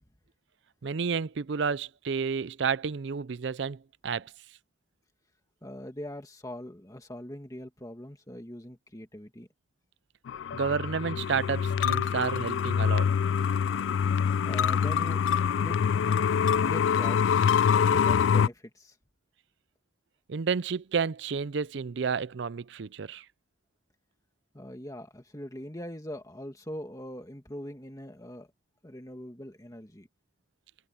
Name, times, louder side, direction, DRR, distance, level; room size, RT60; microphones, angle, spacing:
voice 1, 0.8-4.3 10.5-13.1 20.3-23.2, right 5 dB, 65° right, 0.5 m, -31 dB
voice 2, 5.6-9.5 14.4-15.2 15.5-15.8 16.6-17.4 17.7-19.0 24.5-28.5 28.8-30.1, equal, 20° left, 2.1 m, -41 dB
sound 1, 10.3-18.5, left 7 dB, 70° left, 0.3 m, -25 dB
head